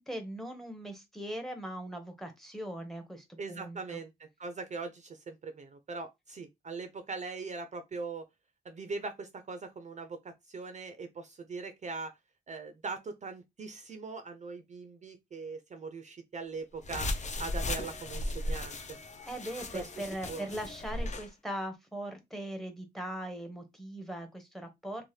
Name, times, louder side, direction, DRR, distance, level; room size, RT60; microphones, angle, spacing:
voice 1, 0.0-4.0 19.3-25.0, right 1 dB, ahead, 0.7 m, -40 dB
voice 2, 3.4-8.2 8.6-12.1 12.5-19.0 19.7-20.4, right 4 dB, 40° right, 0.4 m, -41 dB
sound 1, 16.8-21.3, left 2 dB, 40° left, 0.5 m, -36 dB
2.7 x 2.1 x 3.1 m
wide cardioid pair, 120°, 18 cm